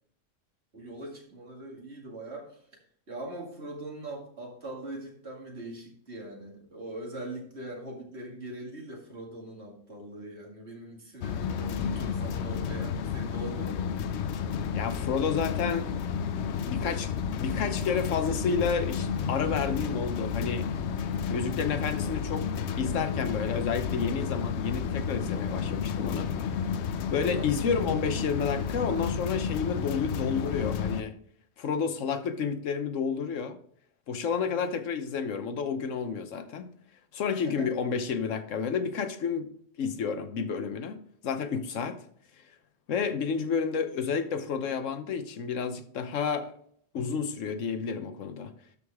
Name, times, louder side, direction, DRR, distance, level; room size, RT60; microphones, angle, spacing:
voice 1, 0.7-2.7 3.1-13.9 27.2-27.5 34.4-34.7 37.3-37.7, right 1 dB, 60° right, -1 dB, 2.4 m, -41 dB
sound 1, 11.2-31.0, left 7 dB, 70° left, 0.8 m, -31 dB
voice 2, 14.7-15.9 16.3-20.7 21.3-26.3 26.6-26.8 27.1-31.1 31.6-33.6 34.1-36.7 37.1-39.5 39.8-41.0 41.2-42.0 42.9-46.5 46.9-48.5, left 6 dB, 85° left, 9 dB, 1.2 m, -30 dB
12.5 x 4.8 x 3.5 m, 0.62 s
omnidirectional pair, 1.3 m